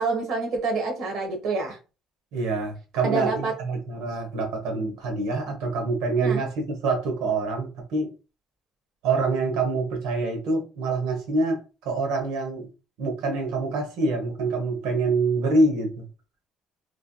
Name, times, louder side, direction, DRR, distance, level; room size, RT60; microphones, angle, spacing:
voice 1, 0.0-1.8 3.0-3.5 6.2-6.4, right 3 dB, 65° right, 1.2 m, -27 dB
voice 2, 2.3-8.1 9.0-12.7 13.0-16.1, right 3 dB, 90° right, 1.0 m, -26 dB
3.2 x 2.7 x 2.3 m
cardioid pair, 120°, 0 cm